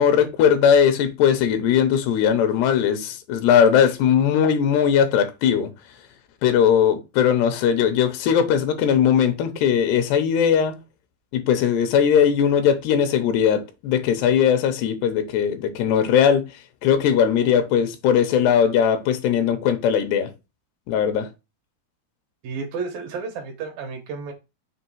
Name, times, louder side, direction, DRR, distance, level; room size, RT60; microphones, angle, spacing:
voice 1, 0.0-5.7 6.4-10.8 11.3-16.4 16.8-20.3 20.9-21.3, left 8 dB, 85° left, 3.0 m, -19 dB
voice 2, 22.4-24.3, right 5 dB, 70° right, 2.5 m, -31 dB
6.6 x 3.2 x 4.6 m
omnidirectional pair, 4.7 m